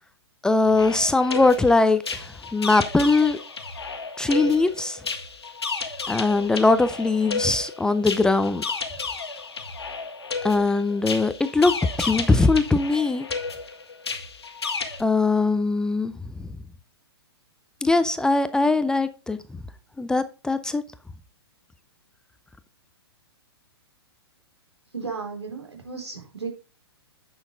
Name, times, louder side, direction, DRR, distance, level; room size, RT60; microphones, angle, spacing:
voice 1, 0.4-3.4 4.2-5.0 6.1-8.6 10.4-13.3 15.0-16.5 17.8-19.4 20.0-20.8, left 3 dB, 5° left, 0.5 m, -21 dB
sound 1, 0.6-15.0, left 4 dB, 75° left, 1.7 m, -33 dB
voice 2, 24.9-26.5, right 4 dB, 80° right, 4.0 m, -34 dB
9.6 x 6.4 x 3.7 m
figure-of-eight pair, 115°, 14 cm